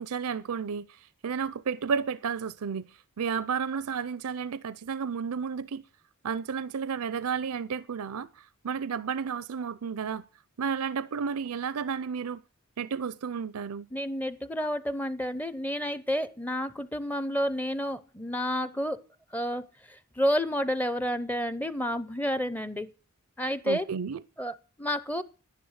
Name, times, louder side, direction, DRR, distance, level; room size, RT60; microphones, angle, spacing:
voice 1, 0.0-2.8 3.2-5.8 6.2-10.2 10.6-12.4 12.8-13.9 23.6-24.2, right 6 dB, 75° right, 0.5 m, -32 dB
voice 2, 13.9-19.0 19.3-22.9 23.4-23.8 24.4-25.2, equal, 10° left, 0.6 m, -30 dB
11.0 x 10.5 x 6.4 m
head